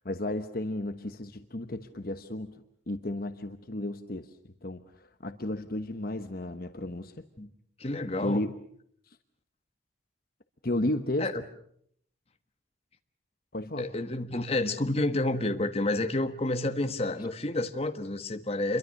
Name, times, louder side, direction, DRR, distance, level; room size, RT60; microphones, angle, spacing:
voice 1, 0.0-2.6 2.9-4.3 4.6-7.1 8.2-8.5 10.6-11.3 13.5-13.9, left 1 dB, 50° left, 8 dB, 1.1 m, -33 dB
voice 2, 7.8-8.4 11.2-11.4 13.8-18.8, left 2 dB, 30° left, 7 dB, 1.4 m, -29 dB
28.0 x 23.0 x 6.5 m, 0.68 s
head